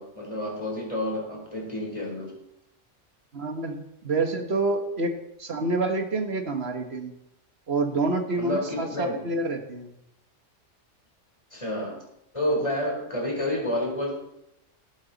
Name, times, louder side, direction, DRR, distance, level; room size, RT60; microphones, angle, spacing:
voice 1, 0.0-2.3 8.4-9.2 11.5-12.0 12.3-14.1, left 1 dB, 25° left, -1 dB, 4.1 m, -29 dB
voice 2, 3.3-5.1 5.4-7.1 7.7-9.9, right 3 dB, 55° right, 6 dB, 1.6 m, -27 dB
18.0 x 9.1 x 4.1 m, 0.83 s
omnidirectional pair, 1.3 m